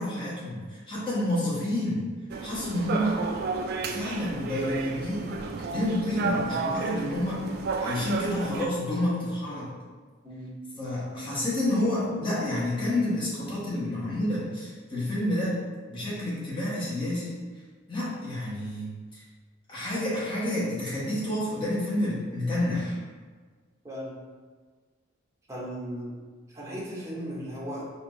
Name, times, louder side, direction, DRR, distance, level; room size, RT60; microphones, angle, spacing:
voice 1, 0.0-2.0 2.4-3.2 3.9-5.3 5.7-7.4 7.8-9.7 10.8-15.6 15.9-17.4 17.9-19.2 19.7-23.0, left 1 dB, 25° left, -9 dB, 1.3 m, -29 dB
sound 1, 2.3-8.7, right 4 dB, 50° right, 0.3 m, -32 dB
voice 2, 15.9-16.2 23.8-24.1 25.5-26.2 26.5-27.9, equal, 15° right, -5 dB, 0.8 m, -37 dB
4.3 x 2.6 x 3.1 m, 1.5 s
head